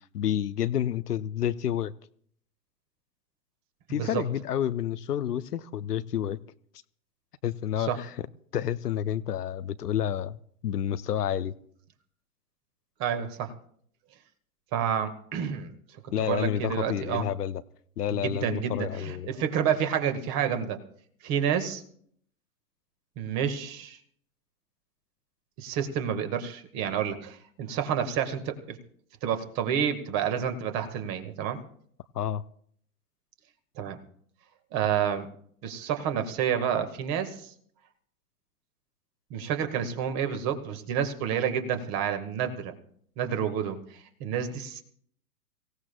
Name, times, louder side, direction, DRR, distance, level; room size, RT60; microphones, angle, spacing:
voice 1, 0.1-1.9 3.9-6.4 7.4-8.3 8.5-10.4 10.6-11.5 16.1-17.6 18.0-19.3 32.1-32.4, left 10 dB, 80° left, 14 dB, 0.7 m, -29 dB
voice 2, 3.9-4.2 7.8-8.0 13.0-13.5 14.7-15.7 16.2-17.3 18.1-20.8 21.2-21.8 23.2-24.0 25.6-28.8 29.2-31.6 33.8-34.0 34.7-35.3 35.6-37.5 39.3-42.7 43.2-44.8, right 8 dB, 35° right, 8 dB, 1.7 m, -29 dB
24.5 x 16.0 x 2.3 m, 0.62 s
hypercardioid pair, 110°, 46 cm